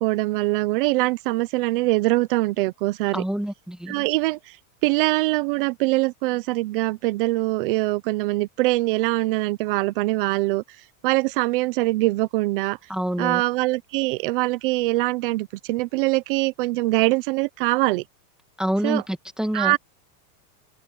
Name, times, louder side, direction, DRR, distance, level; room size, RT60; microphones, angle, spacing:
voice 1, 0.0-3.2 3.9-4.6 4.8-10.6 11.0-12.8 13.2-18.0 18.8-19.0 19.5-19.8, right 21 dB, 35° right, 0.5 m, -23 dB
voice 2, 3.1-3.9 12.9-13.4 18.6-19.7, equal, ahead, 1.7 m, -27 dB
open air
supercardioid pair, 170°, 47 cm